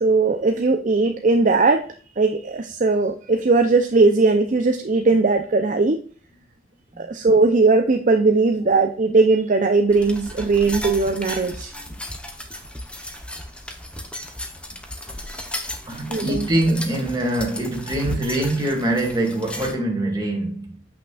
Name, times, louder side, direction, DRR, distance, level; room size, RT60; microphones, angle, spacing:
voice 1, 0.0-1.9 2.1-6.0 7.0-11.7 16.1-16.5, right 3 dB, 45° right, 0.5 m, -19 dB
sound 1, 9.9-19.7, left 1 dB, 5° left, 0.9 m, -34 dB
voice 2, 15.9-20.8, right 1 dB, 25° right, 2.0 m, -23 dB
8.3 x 5.9 x 2.4 m
head